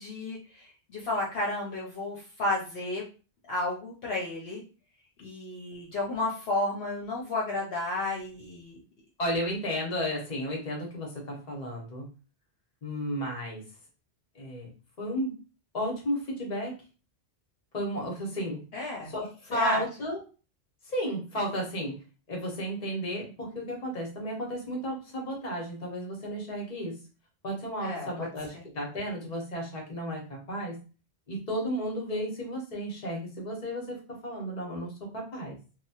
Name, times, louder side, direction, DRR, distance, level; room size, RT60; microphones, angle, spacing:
voice 1, 0.0-3.0 3.5-4.6 5.2-8.8 18.7-19.1 19.5-19.8 27.8-28.7, left 2 dB, 70° left, -4 dB, 0.9 m, -32 dB
voice 2, 9.2-12.1 12.8-13.6 14.3-14.7 15.0-15.4 15.7-16.7 17.7-18.6 19.1-20.2 20.9-21.9 22.3-26.9 27.4-30.8 31.3-34.0 34.2-35.5, equal, 45° left, -1 dB, 1.0 m, -33 dB
2.9 x 2.1 x 2.8 m, 0.34 s
omnidirectional pair, 1.1 m